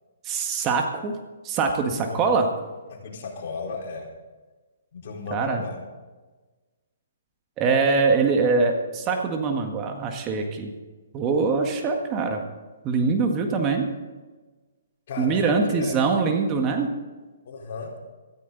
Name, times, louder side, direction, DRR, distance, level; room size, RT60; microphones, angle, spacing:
voice 1, 0.2-1.1 1.4-2.5 5.3-5.6 7.6-10.7 11.1-12.4 12.8-13.9 15.2-16.9, right 4 dB, 25° right, 3 dB, 1.7 m, -23 dB
voice 2, 3.0-4.1 4.9-5.8 15.1-16.1 17.4-17.9, left 4 dB, 55° left, -1 dB, 4.3 m, -34 dB
16.5 x 14.0 x 4.0 m, 1.3 s
hypercardioid pair, 140°, 0 cm